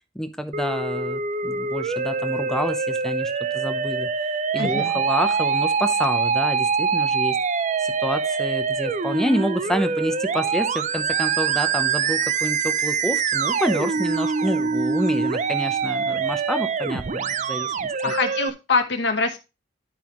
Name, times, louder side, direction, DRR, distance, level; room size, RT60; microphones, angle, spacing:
voice 1, 0.1-4.1 4.5-7.4 7.8-18.1, equal, 5° left, 7 dB, 0.8 m, -28 dB
Musical instrument, 0.5-18.5, right 5 dB, 40° right, 0.4 m, -24 dB
voice 2, 4.5-5.0 18.0-19.4, left 4 dB, 65° left, 4 dB, 1.0 m, -24 dB
10.5 x 5.5 x 3.1 m, 0.28 s
head